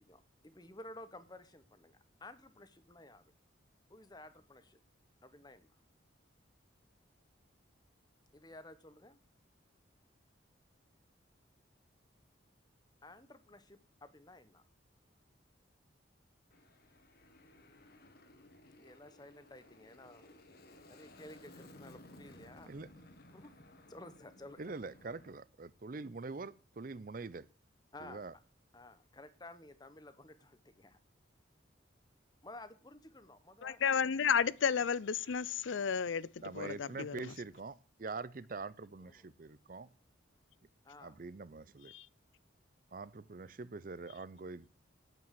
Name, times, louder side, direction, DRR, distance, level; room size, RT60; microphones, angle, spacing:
voice 1, 0.1-3.2 3.9-4.8 5.2-5.7 8.3-9.2 13.0-14.6 18.8-20.3 20.9-22.7 23.3-24.8 25.9-26.1 27.9-28.2 28.7-31.0 32.4-33.8 39.0-39.3 40.8-41.2, left 1 dB, 20° left, 1.1 m, -54 dB
Aircraft, 16.5-25.3, left 1 dB, 50° left, 1.6 m, -58 dB
voice 2, 24.6-27.5 28.0-28.3 36.4-39.9 41.0-41.9 42.9-44.7, right 3 dB, 45° right, 0.5 m, -44 dB
voice 3, 33.6-36.3 36.6-37.3 41.9-42.1, left 7 dB, 75° left, 0.5 m, -32 dB
9.2 x 8.9 x 7.6 m
head